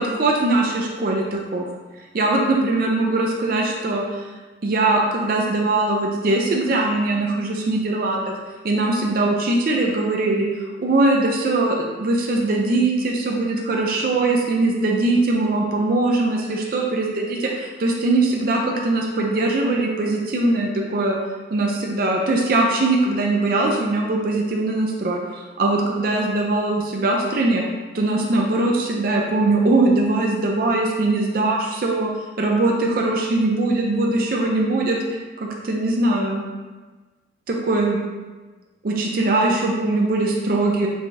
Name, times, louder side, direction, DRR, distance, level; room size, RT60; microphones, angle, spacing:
voice 1, 0.0-1.7 2.1-4.3 4.6-8.4 8.6-10.5 10.8-21.2 21.5-27.6 27.9-32.1 32.4-35.0 35.4-36.4 37.5-38.0 38.8-40.9, right 2 dB, 50° right, -1 dB, 0.4 m, -21 dB
4.7 x 2.6 x 3.4 m, 1.3 s
head